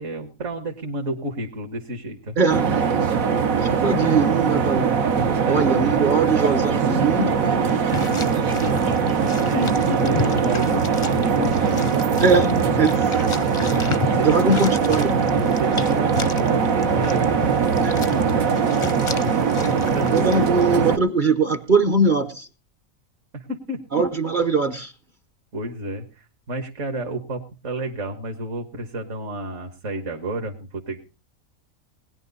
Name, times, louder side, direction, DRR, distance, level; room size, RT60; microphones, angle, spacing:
voice 1, 0.0-2.4 5.4-5.7 9.4-10.9 11.2-12.6 14.1-14.6 15.6-17.5 19.8-20.7 23.3-23.8 25.5-31.0, right 1 dB, 60° right, 1.8 m, -30 dB
voice 2, 2.4-2.8 3.6-5.1 5.5-7.7 12.2-13.1 14.2-15.2 17.8-18.1 20.1-22.5 23.9-24.9, right 4 dB, 40° right, 0.9 m, -21 dB
sound 1, 2.5-21.0, right 6 dB, 75° right, 1.5 m, -21 dB
sound 2, 7.7-20.6, left 5 dB, 35° left, 0.5 m, -33 dB
20.0 x 10.5 x 4.0 m
omnidirectional pair, 1.4 m